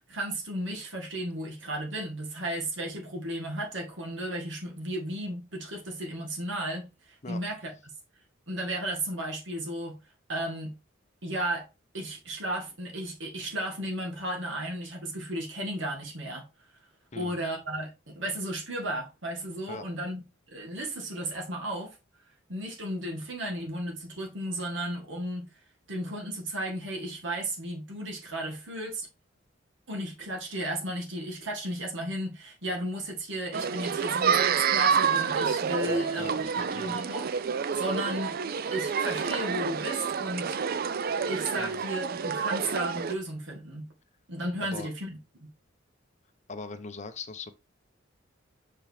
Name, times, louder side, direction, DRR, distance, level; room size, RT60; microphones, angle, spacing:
voice 1, 0.1-7.7 8.5-10.0 10.3-10.7 11.2-11.7 11.9-16.5 17.2-20.2 20.5-22.0 22.5-25.5 25.9-29.1 29.9-37.3 37.7-38.4 38.7-40.6 41.3-43.9 44.3-45.5, right 1 dB, 65° right, 1.9 m, -34 dB
sound 1, 33.5-43.1, right 6 dB, 50° right, 0.4 m, -28 dB
voice 2, 35.9-37.0 41.6-41.8 44.6-44.9 46.5-47.5, left 4 dB, 35° left, 0.7 m, -41 dB
5.8 x 5.3 x 3.3 m
head